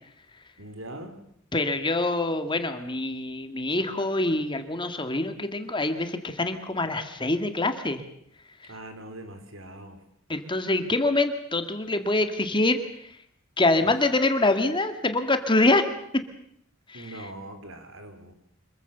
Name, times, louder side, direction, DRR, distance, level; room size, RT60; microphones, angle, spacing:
voice 1, 0.6-1.2 8.7-10.0 16.9-18.3, right 1 dB, 70° right, 7 dB, 4.0 m, -41 dB
voice 2, 1.5-8.0 10.3-12.8 13.6-15.9 16.9-17.3, left 2 dB, 25° left, 8 dB, 2.0 m, -25 dB
26.0 x 22.0 x 6.9 m, 0.70 s
head